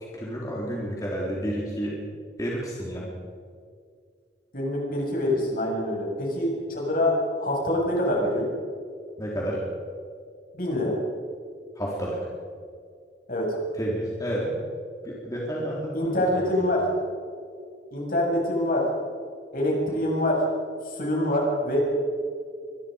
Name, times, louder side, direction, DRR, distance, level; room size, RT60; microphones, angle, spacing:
voice 1, 0.1-2.0 2.4-3.1 9.2-9.6 11.8-12.2 13.8-14.5 15.0-16.7, equal, 20° left, -4 dB, 3.8 m, -31 dB
voice 2, 4.5-8.5 10.5-11.0 13.3-13.6 15.9-16.8 17.9-18.9 19.5-20.4 20.8-21.8, left 1 dB, 55° left, -2 dB, 7.2 m, -25 dB
24.5 x 21.5 x 5.3 m, 2.2 s
head